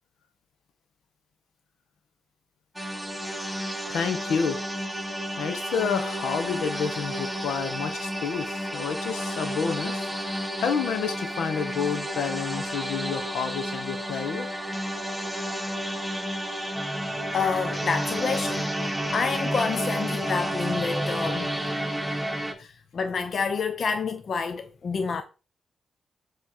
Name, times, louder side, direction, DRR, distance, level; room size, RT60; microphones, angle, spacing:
sound 1, 2.8-22.5, equal, 5° right, 1.6 m, -31 dB
voice 1, 3.9-4.6 5.4-14.5, left 6 dB, 85° left, 1.0 m, -29 dB
voice 2, 17.3-21.5 22.6-25.2, left 5 dB, 60° left, 0.6 m, -28 dB
7.0 x 3.2 x 4.4 m
cardioid pair, 60°, 0 cm